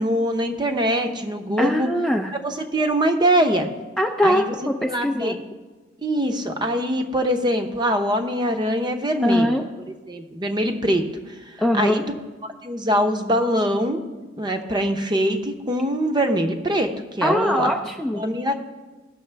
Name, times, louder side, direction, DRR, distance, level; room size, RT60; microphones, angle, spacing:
voice 1, 0.0-1.9 2.4-3.7 4.2-4.4 4.8-5.4 6.0-9.5 10.1-11.0 11.7-12.0 12.4-14.0 14.4-16.9 17.2-17.7 18.1-18.5, equal, 25° right, 6 dB, 0.8 m, -23 dB
voice 2, 1.6-2.3 4.0-5.4 9.2-9.6 11.6-12.0 17.2-18.3, equal, ahead, 2 dB, 0.4 m, -22 dB
17.0 x 6.4 x 3.4 m, 1.3 s
head